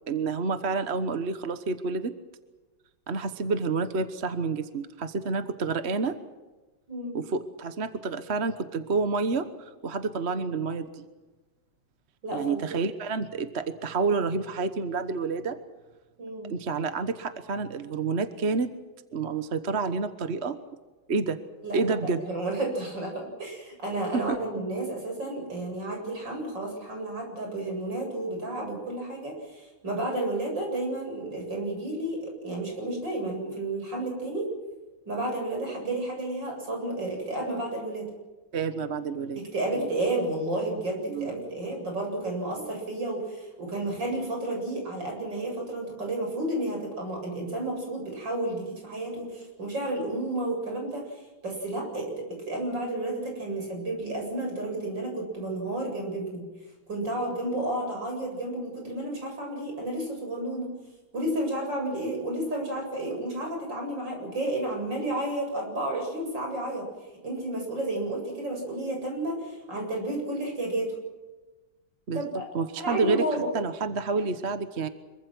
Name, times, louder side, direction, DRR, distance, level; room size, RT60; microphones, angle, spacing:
voice 1, 0.1-2.1 3.1-6.2 7.1-11.0 12.3-15.6 16.5-18.7 19.1-20.6 21.1-21.4 21.7-22.3 24.1-24.4 38.5-39.4 39.7-39.9 41.1-41.3 42.6-42.7 72.1-72.2 72.5-73.2 73.5-74.9, right 4 dB, 40° right, 10 dB, 1.3 m, -29 dB
voice 2, 6.9-7.2 12.2-12.8 16.2-16.5 21.6-22.0 22.3-34.5 35.1-38.1 39.4-56.4 56.9-60.7 61.1-66.9 67.2-70.9 72.1-72.4 72.8-73.5, right 1 dB, 70° right, 1 dB, 8.7 m, -31 dB
26.0 x 23.5 x 6.2 m, 1.2 s
omnidirectional pair, 2.1 m